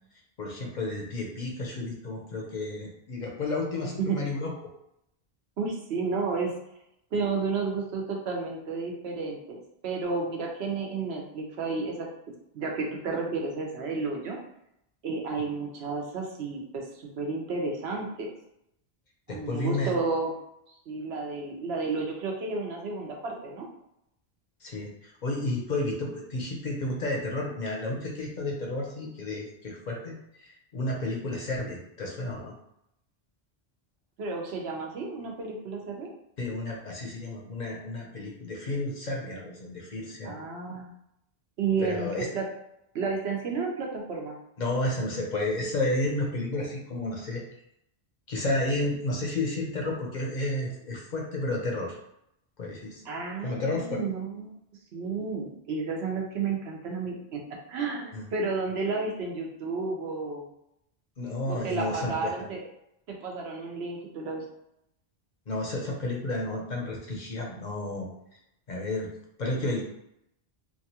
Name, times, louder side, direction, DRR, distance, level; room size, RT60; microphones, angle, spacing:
voice 1, 0.4-4.5 19.3-19.9 24.6-32.5 36.4-40.4 41.8-42.3 44.6-47.4 48.3-52.0 52.6-53.0 53.4-54.0 58.1-58.3 61.2-62.5 65.5-68.1 68.7-69.1 69.4-69.8, left 2 dB, 55° left, -1 dB, 0.6 m, -31 dB
voice 2, 3.8-4.2 5.6-6.5 7.1-12.1 12.5-14.4 15.0-18.3 19.3-20.3 20.9-23.7 34.2-36.1 40.2-40.9 41.6-42.4 42.9-44.4 53.1-54.6 54.9-57.4 57.7-60.5 61.5-62.6 63.1-64.4, right 4 dB, 80° right, 0 dB, 0.9 m, -32 dB
3.0 x 2.3 x 2.8 m, 0.79 s
omnidirectional pair, 1.1 m